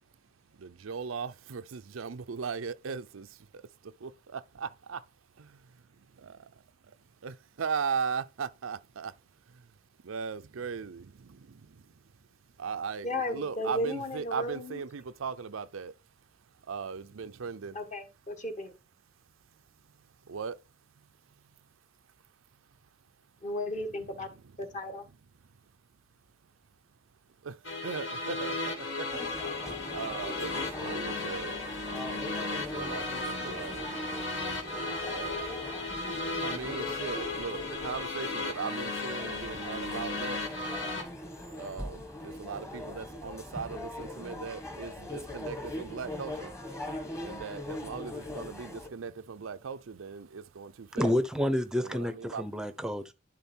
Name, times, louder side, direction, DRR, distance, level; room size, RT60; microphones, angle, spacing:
voice 1, 0.5-5.0 6.2-6.6 7.2-9.2 9.5-9.7 10.0-11.9 12.6-15.9 16.6-17.8 20.2-20.6 27.4-31.5 32.3-33.9 35.0-40.4 41.6-46.5 47.2-51.2 51.8-52.5, right 5 dB, 80° right, 0.5 m, -38 dB
voice 2, 13.0-14.8 17.7-18.7 23.4-24.3 24.6-25.0, left 1 dB, 40° left, 1.5 m, -35 dB
sound 1, 27.6-41.0, left 2 dB, 65° left, 2.0 m, -35 dB
sound 2, 29.1-48.9, left 1 dB, 15° left, 1.4 m, -41 dB
voice 3, 51.0-53.1, left 1 dB, 5° right, 0.7 m, -29 dB
11.0 x 3.7 x 4.4 m
head